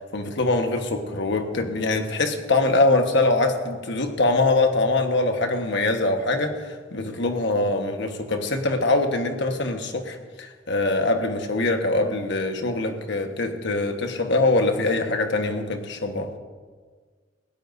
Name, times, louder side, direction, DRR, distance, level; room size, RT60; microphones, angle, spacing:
voice 1, 0.1-16.3, left 2 dB, 65° left, 5 dB, 1.4 m, -23 dB
21.0 x 16.0 x 2.7 m, 1.5 s
head